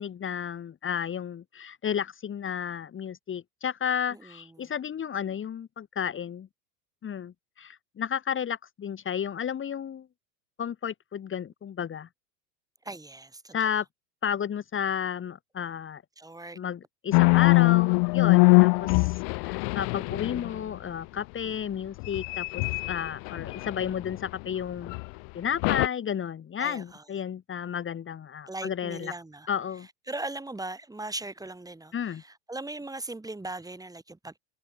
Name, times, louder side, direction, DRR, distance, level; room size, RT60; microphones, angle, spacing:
voice 1, 0.0-6.5 7.0-10.1 10.6-12.1 13.5-13.9 14.2-16.0 16.5-24.9 25.3-29.1 29.5-29.9 31.9-32.2, left 8 dB, 25° left, 2.6 m, -32 dB
voice 2, 4.2-4.7 12.9-13.6 16.2-16.6 18.5-18.6 26.6-27.0 28.5-29.5 30.1-34.4, right 2 dB, 10° right, 3.9 m, -39 dB
sound 1, 17.1-20.7 22.0-24.3 24.8-25.0 25.6-25.9, left 37 dB, 50° left, 1.1 m, -22 dB
hypercardioid pair, 95°, 47 cm